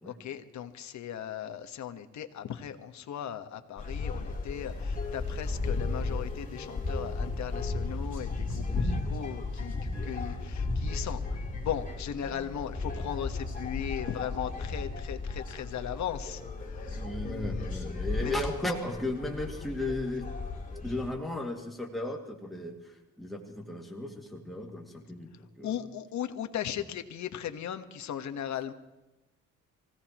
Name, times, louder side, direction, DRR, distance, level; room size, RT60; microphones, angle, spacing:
voice 1, 0.0-17.6 18.2-18.3 25.6-28.7, left 9 dB, 65° left, 7 dB, 1.4 m, -38 dB
sound 1, 3.8-21.1, left 3 dB, 25° left, 3.7 m, -34 dB
voice 2, 16.9-20.3 20.8-25.9, left 1 dB, ahead, 0 dB, 2.3 m, -35 dB
25.0 x 16.5 x 3.1 m, 1.0 s
cardioid pair, 90°, 30 cm